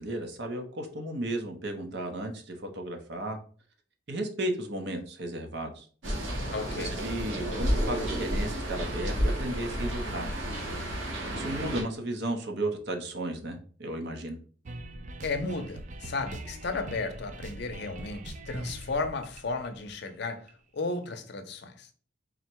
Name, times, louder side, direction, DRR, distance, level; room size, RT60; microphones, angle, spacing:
voice 1, 0.0-3.4 4.1-5.9 6.8-10.3 11.3-14.4, right 1 dB, 60° right, 0.8 m, -34 dB
sound 1, 6.0-11.8, equal, 80° right, 1.2 m, -31 dB
voice 2, 6.5-7.0 15.2-21.9, left 3 dB, 60° left, 0.6 m, -34 dB
sound 2, 14.7-20.5, right 2 dB, 40° right, 0.4 m, -42 dB
3.8 x 2.2 x 4.5 m
head